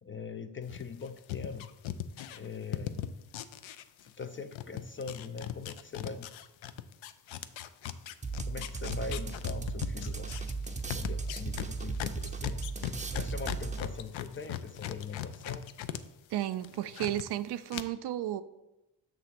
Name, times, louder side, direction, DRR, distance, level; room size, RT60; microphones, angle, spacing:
voice 1, 0.0-1.7 2.3-3.1 4.2-6.3 8.4-10.3 11.0-12.6 13.1-15.6, left 5 dB, 30° left, 10 dB, 0.4 m, -41 dB
sound 1, 0.7-4.3 4.5-16.0 16.3-17.2 17.7-17.8, left 12 dB, 70° left, 0.6 m, -39 dB
sound 2, 8.2-14.1, right 4 dB, 15° right, 0.6 m, -36 dB
voice 2, 16.3-18.4, right 12 dB, 60° right, 12 dB, 0.5 m, -33 dB
6.8 x 3.8 x 5.9 m, 0.96 s
cardioid pair, 70°, 48 cm